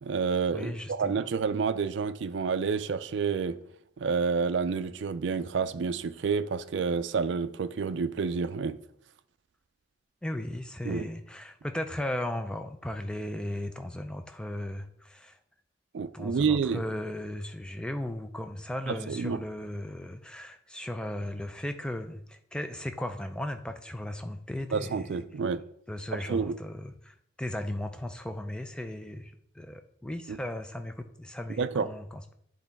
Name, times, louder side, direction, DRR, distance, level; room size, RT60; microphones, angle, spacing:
voice 1, 0.0-3.6 4.0-8.8 10.8-11.1 15.9-16.8 18.9-19.4 24.7-25.6 26.1-26.6 30.3-30.4 31.6-31.9, right 5 dB, 70° right, 0.4 m, -29 dB
voice 2, 0.5-1.3 10.2-15.4 16.1-25.2 25.9-32.3, left 1 dB, 5° left, 0.3 m, -36 dB
9.7 x 3.9 x 3.5 m
head